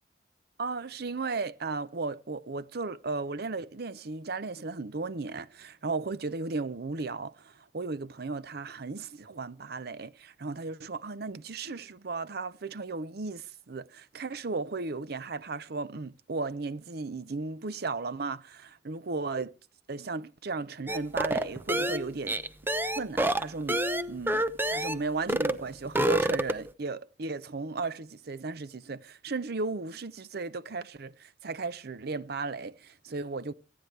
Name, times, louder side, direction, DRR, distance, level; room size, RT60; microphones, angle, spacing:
voice 1, 0.6-19.5 19.9-22.4 22.9-23.8 24.1-24.4 24.7-33.5, right 3 dB, 60° right, 0.7 m, -35 dB
sound 1, 20.9-25.0 25.3-25.6 25.8-26.7, right 1 dB, 10° right, 0.8 m, -28 dB
28.0 x 9.6 x 3.3 m
head